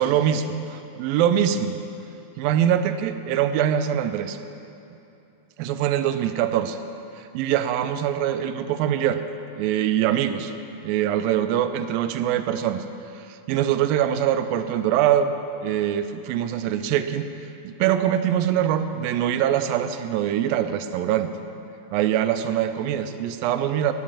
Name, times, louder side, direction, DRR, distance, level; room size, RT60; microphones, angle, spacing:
voice 1, 0.0-1.8 2.4-4.4 5.6-6.8 7.2-9.2 9.6-10.5 10.8-12.8 13.2-15.3 15.6-17.3 17.6-21.3 21.9-23.9, right 10 dB, 80° right, 9 dB, 2.3 m, -23 dB
11.0 x 8.3 x 8.7 m, 2.8 s
omnidirectional pair, 4.3 m